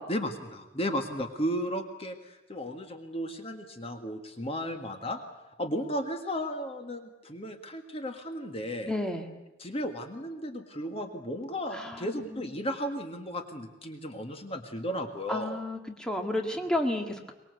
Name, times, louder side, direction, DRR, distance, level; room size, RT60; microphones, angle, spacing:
voice 1, 0.1-5.2 5.6-8.9 9.6-15.6, equal, 30° left, 5 dB, 1.7 m, -34 dB
voice 2, 8.9-9.3 11.7-12.4 15.3-17.3, left 1 dB, 5° left, 3 dB, 2.0 m, -32 dB
24.0 x 20.5 x 8.1 m, 1.0 s
head